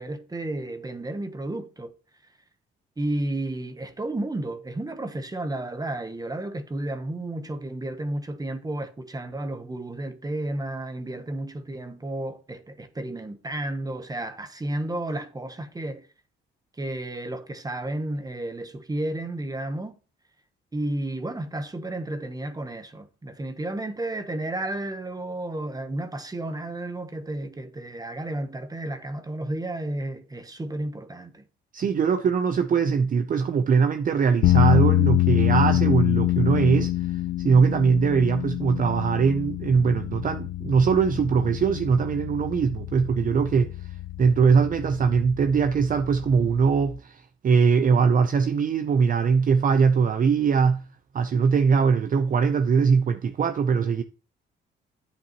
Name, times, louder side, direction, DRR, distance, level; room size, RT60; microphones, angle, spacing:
voice 1, 0.0-1.9 3.0-16.1 16.8-19.9 20.7-31.4, right 1 dB, 20° right, 1.0 m, -32 dB
voice 2, 31.7-43.7 44.2-50.8 51.1-54.0, right 6 dB, 45° right, 0.6 m, -21 dB
sound 1, 34.4-46.9, left 16 dB, 85° left, 0.4 m, -26 dB
8.5 x 8.2 x 3.0 m
cardioid pair, 90°, 20 cm